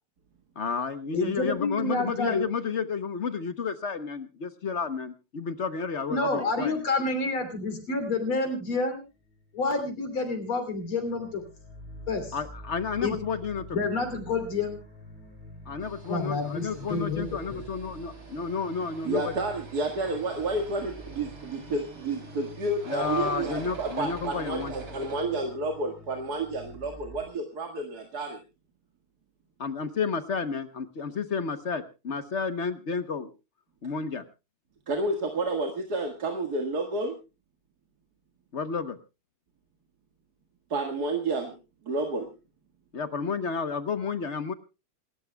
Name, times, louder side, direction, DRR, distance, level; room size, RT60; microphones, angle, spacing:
voice 1, 0.6-6.8 12.3-13.6 15.7-19.3 22.9-24.7 29.6-33.3 33.8-34.2 38.5-39.0 42.9-44.5, left 5 dB, 50° left, 11 dB, 0.9 m, -31 dB
voice 2, 1.1-2.4 6.1-9.0 9.5-11.4 12.1-12.3 13.0-13.2 13.7-14.8 16.1-17.6, left 3 dB, 85° left, 6 dB, 3.9 m, -28 dB
sound 1, 9.1-10.4 10.7-27.2, equal, 30° left, 4.9 m, -47 dB
sound 2, 15.8-25.2, right 4 dB, 75° right, 4.1 m, -45 dB
voice 3, 19.0-28.4 34.9-37.2 40.7-41.6 41.9-42.3, right 2 dB, 50° right, 3 dB, 2.2 m, -30 dB
28.5 x 13.0 x 2.3 m, 0.29 s
omnidirectional pair, 2.3 m